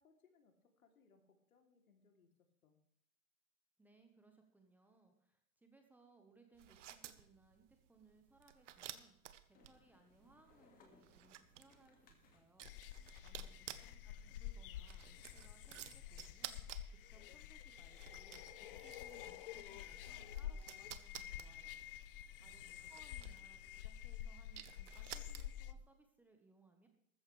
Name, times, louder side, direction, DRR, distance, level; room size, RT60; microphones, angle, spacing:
voice 1, 0.0-2.3 2.6-2.8 13.4-13.8 22.4-22.9, left 5 dB, 75° left, 4 dB, 3.2 m, -72 dB
voice 2, 3.8-9.1 9.5-12.7 13.2-16.6 16.9-21.8 22.4-26.9, right 3 dB, 5° right, 3 dB, 1.1 m, -68 dB
sound 1, 6.5-25.8, right 11 dB, 55° right, 1.2 m, -55 dB
sound 2, 9.5-16.8, left 4 dB, 20° left, 2.0 m, -71 dB
sound 3, 12.6-25.7, left 10 dB, 40° left, 0.7 m, -49 dB
14.5 x 14.0 x 3.3 m, 0.70 s
hypercardioid pair, 140°, 43 cm